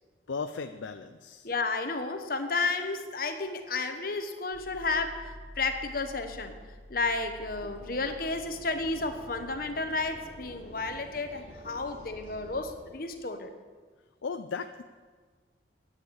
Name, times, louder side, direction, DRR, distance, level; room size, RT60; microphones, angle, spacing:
voice 1, 0.3-1.5 7.6-7.7 14.2-14.8, left 5 dB, 85° left, 8 dB, 0.5 m, -36 dB
voice 2, 1.4-5.3 5.6-6.5 6.9-13.5, left 3 dB, 50° left, 7 dB, 1.1 m, -32 dB
sound 1, 4.5-13.0, equal, 20° left, 1.4 m, -50 dB
sound 2, 7.4-12.8, equal, 40° right, 4.4 m, -50 dB
10.0 x 8.2 x 8.5 m, 1.5 s
head